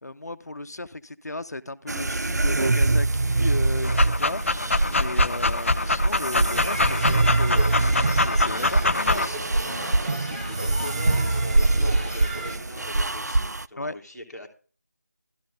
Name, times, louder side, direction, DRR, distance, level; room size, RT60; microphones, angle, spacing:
voice 1, 0.0-10.3 13.8-14.0, left 2 dB, 75° left, 1.0 m, -35 dB
sound 1, 1.9-13.6, right 2 dB, 85° right, 0.5 m, -24 dB
Dog, 3.8-9.3, left 2 dB, 50° left, 0.6 m, -25 dB
sound 2, 6.4-12.6, right 2 dB, 35° right, 1.7 m, -32 dB
voice 2, 10.0-14.5, left 1 dB, ahead, 0.6 m, -42 dB
12.5 x 4.2 x 7.9 m
figure-of-eight pair, 170°, 9 cm